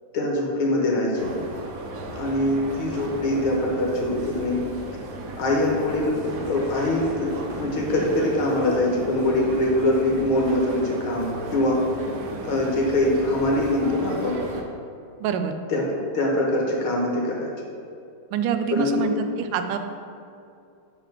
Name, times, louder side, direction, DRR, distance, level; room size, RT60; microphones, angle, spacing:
voice 1, 0.1-1.5 2.1-4.6 5.4-11.8 12.4-14.4 15.7-15.9 16.1-17.7 18.7-19.1, left 1 dB, 70° left, -1 dB, 1.9 m, -23 dB
sound 1, 1.2-14.6, right 2 dB, 65° right, 0.8 m, -35 dB
voice 2, 15.2-15.5 18.3-19.8, right 8 dB, 85° right, 7 dB, 1.5 m, -26 dB
8.1 x 3.3 x 5.9 m, 2.5 s
omnidirectional pair, 2.4 m